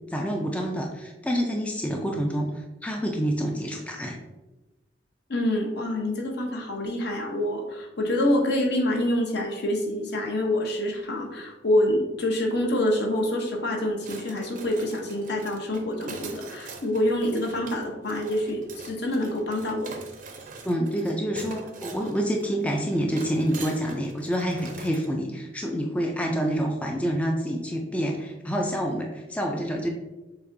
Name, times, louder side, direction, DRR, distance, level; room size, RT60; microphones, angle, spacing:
voice 1, 0.1-4.2 20.6-29.9, equal, 5° left, 1 dB, 0.3 m, -27 dB
voice 2, 5.3-20.0, left 1 dB, 60° left, 1 dB, 0.8 m, -26 dB
sound 1, 14.0-25.1, right 4 dB, 45° right, 0.5 m, -43 dB
6.7 x 2.5 x 2.6 m, 1.1 s
head